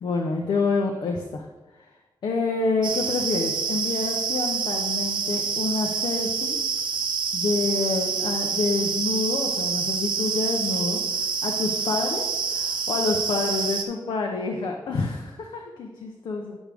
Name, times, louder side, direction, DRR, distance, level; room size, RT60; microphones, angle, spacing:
voice 1, 0.0-1.5 1.8-1.9 2.2-6.6 7.3-16.6, left 4 dB, 85° left, 2 dB, 0.7 m, -28 dB
sound 1, 2.8-13.8, right 5 dB, 75° right, 0.7 m, -27 dB
10.5 x 6.2 x 3.4 m, 1.2 s
wide cardioid pair, 100°, 8 cm